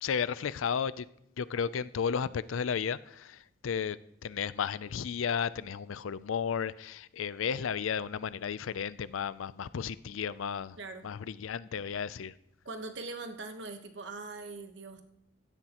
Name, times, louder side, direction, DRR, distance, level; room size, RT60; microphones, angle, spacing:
voice 1, 0.0-1.1 1.4-10.8 11.0-12.3, left 7 dB, 90° left, 17 dB, 0.4 m, -33 dB
voice 2, 12.6-15.1, right 3 dB, 65° right, 7 dB, 1.1 m, -41 dB
16.0 x 12.0 x 3.0 m, 0.79 s
head